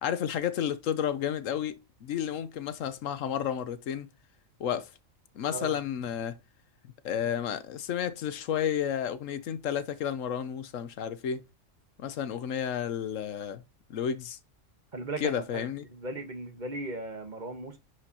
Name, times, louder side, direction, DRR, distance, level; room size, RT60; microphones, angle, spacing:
voice 1, 0.0-4.1 4.6-4.9 5.4-6.4 7.0-11.4 12.0-13.6 13.9-14.4 15.2-15.8, left 9 dB, 85° left, 1.1 m, -31 dB
voice 2, 5.5-5.8 14.9-17.8, right 2 dB, 40° right, 1.2 m, -37 dB
10.0 x 4.8 x 2.8 m
omnidirectional pair, 1.3 m